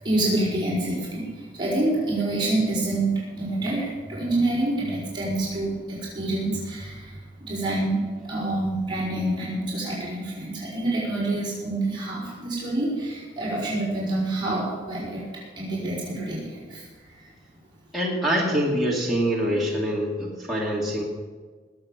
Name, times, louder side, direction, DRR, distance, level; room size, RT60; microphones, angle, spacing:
voice 1, 0.0-8.0 8.2-15.3 15.6-17.3, right 2 dB, 25° right, -8 dB, 5.3 m, -27 dB
voice 2, 17.9-21.0, equal, ahead, -5 dB, 2.6 m, -25 dB
20.5 x 8.0 x 7.4 m, 1.4 s
head